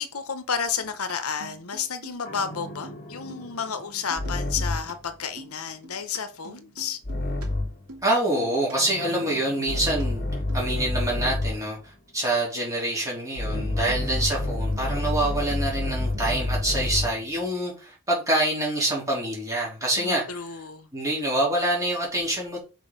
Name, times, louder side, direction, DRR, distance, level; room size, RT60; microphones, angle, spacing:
voice 1, 0.0-7.0 20.0-20.9, left 6 dB, 80° left, 1.0 m, -31 dB
sound 1, 0.6-1.1 1.4-2.4 2.7-3.0 3.3-3.6 4.1-4.9 5.2-6.2 6.4-7.5 7.7-8.1 8.4-8.7 9.2-10.1 10.5-10.7 11.0-11.1 13.5-14.3 14.6-15.6 15.8-16.7, right 2 dB, 80° right, 2.7 m, -45 dB
sound 2, 2.3-5.0 7.0-7.9 8.7-11.7 13.4-17.2, left 2 dB, 45° left, 1.4 m, -29 dB
voice 2, 8.0-10.2 10.5-11.8 12.1-20.2 20.9-22.6, right 1 dB, 15° right, 3.4 m, -26 dB
6.2 x 4.5 x 5.3 m
head